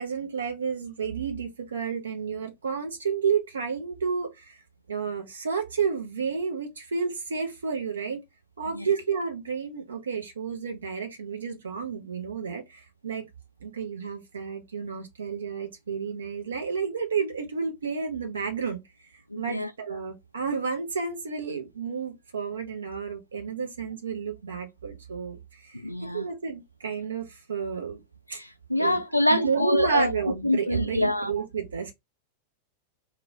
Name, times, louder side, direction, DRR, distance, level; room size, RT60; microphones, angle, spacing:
voice 1, 0.0-4.6 4.9-8.2 8.6-13.3 13.6-18.8 19.4-25.8 26.1-28.0 28.3-28.4 28.8-29.0 29.3-31.9, right 6 dB, 70° right, 0.7 m, -31 dB
voice 2, 19.3-19.7 25.7-26.3 28.3-30.1 30.4-31.3, left 1 dB, 90° left, 0.4 m, -25 dB
2.2 x 2.2 x 3.8 m
figure-of-eight pair, 90°, 0 cm